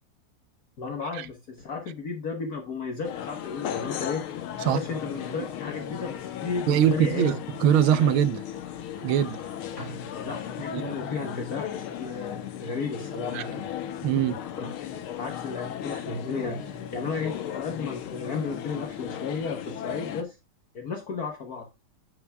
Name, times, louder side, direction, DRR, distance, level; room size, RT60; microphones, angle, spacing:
voice 1, 0.8-4.2 4.6-7.4 10.2-13.6 14.6-14.8 15.2-16.6 16.9-20.4 20.7-21.7, left 5 dB, 50° left, 1.5 m, -33 dB
sound 1, 3.0-20.2, left 9 dB, 90° left, 1.8 m, -36 dB
sound 2, 5.1-10.5, right 1 dB, 35° left, 3.4 m, -49 dB
voice 2, 6.7-8.4 9.0-9.4 10.7-10.9 13.3-13.4 14.0-14.4, right 10 dB, 80° right, 1.6 m, -22 dB
8.5 x 8.2 x 2.3 m
omnidirectional pair, 2.3 m